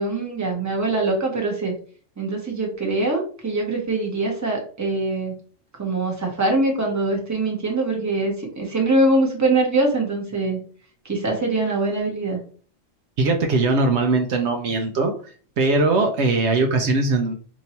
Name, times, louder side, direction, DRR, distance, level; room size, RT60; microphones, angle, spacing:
voice 1, 0.0-1.7 2.2-5.3 5.8-10.6 11.0-12.4, right 2 dB, 15° right, 0 dB, 1.0 m, -23 dB
voice 2, 13.2-15.1 15.6-17.3, right 3 dB, 70° right, 4 dB, 0.9 m, -20 dB
2.9 x 2.7 x 4.3 m, 0.42 s
omnidirectional pair, 1.2 m